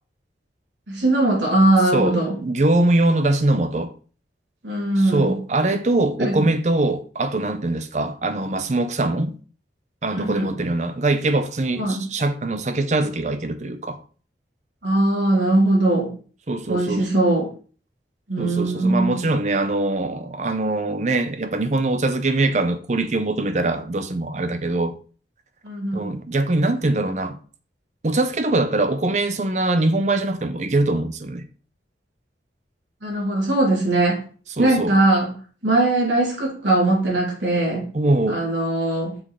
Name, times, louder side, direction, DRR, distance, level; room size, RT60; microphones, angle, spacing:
voice 1, 0.9-2.4 4.6-5.4 6.2-6.4 10.1-10.5 11.8-12.1 14.8-16.1 16.7-17.5 18.3-19.2 25.6-26.2 33.0-34.2 34.6-35.3 35.6-37.9 38.3-39.2, right 2 dB, 90° right, 3.1 m, -20 dB
voice 2, 2.4-3.9 5.1-9.4 10.0-14.0 16.5-17.0 18.4-24.9 25.9-27.4 28.0-31.4 34.6-34.9 37.9-38.4, right 2 dB, 40° right, 0.6 m, -22 dB
6.1 x 3.8 x 4.8 m
head